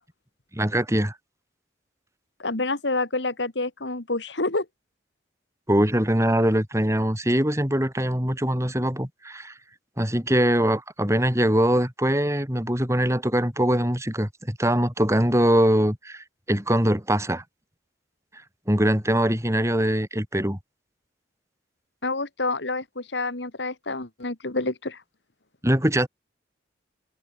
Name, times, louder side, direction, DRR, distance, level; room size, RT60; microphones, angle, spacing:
voice 1, 0.5-1.1 5.7-9.5 10.0-17.4 18.7-20.6 25.6-26.1, right 1 dB, 15° right, 6.1 m, -22 dB
voice 2, 2.4-4.7 22.0-25.0, left 2 dB, 80° left, 2.4 m, -28 dB
head